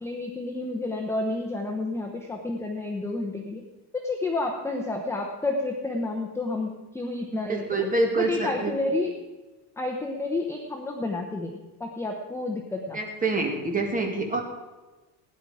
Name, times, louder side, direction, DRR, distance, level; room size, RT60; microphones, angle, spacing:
voice 1, 0.0-3.6 3.9-7.9 8.1-9.1 9.8-11.5 11.8-13.0, left 2 dB, 5° left, 1 dB, 0.9 m, -30 dB
voice 2, 7.3-8.7 12.9-14.4, right 3 dB, 20° right, 2 dB, 2.0 m, -26 dB
17.0 x 10.0 x 4.9 m, 1.2 s
cardioid pair, 165°, 44 cm